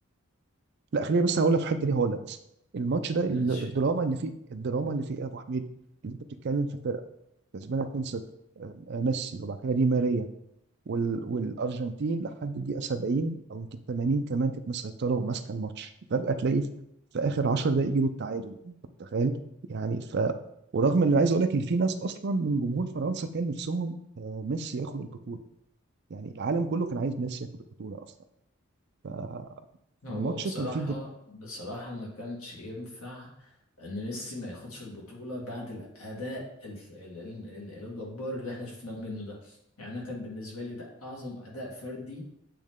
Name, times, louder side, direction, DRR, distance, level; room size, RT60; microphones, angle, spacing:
voice 1, 0.9-2.4 2.7-5.6 6.0-6.2 6.4-7.0 7.5-8.2 8.6-10.3 10.9-16.7 17.1-18.7 19.0-19.3 19.7-20.3 20.7-25.4 26.1-27.5 27.8-28.0 29.0-29.5 30.1-30.9, right 3 dB, 50° right, 9 dB, 0.4 m, -28 dB
voice 2, 3.3-3.7 30.0-42.2, left 1 dB, 85° left, -3 dB, 2.1 m, -39 dB
8.5 x 3.1 x 3.6 m, 0.78 s
head